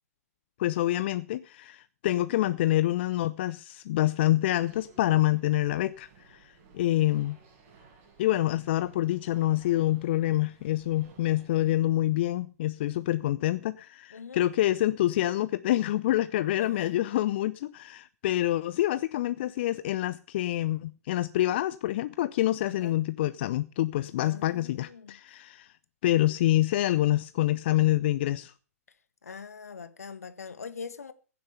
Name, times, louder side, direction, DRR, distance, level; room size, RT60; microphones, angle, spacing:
voice 1, 0.6-7.4 8.2-25.7 26.0-28.5, left 14 dB, 40° left, 0.6 m, -27 dB
sound 1, 4.4-11.8, right 5 dB, 35° right, 5.3 m, -57 dB
voice 2, 14.1-14.4 16.6-17.0 22.6-23.0 24.2-25.2 26.8-26.9 29.2-31.1, left 5 dB, 70° left, 1.5 m, -42 dB
16.0 x 7.6 x 6.7 m
figure-of-eight pair, 120°, 8 cm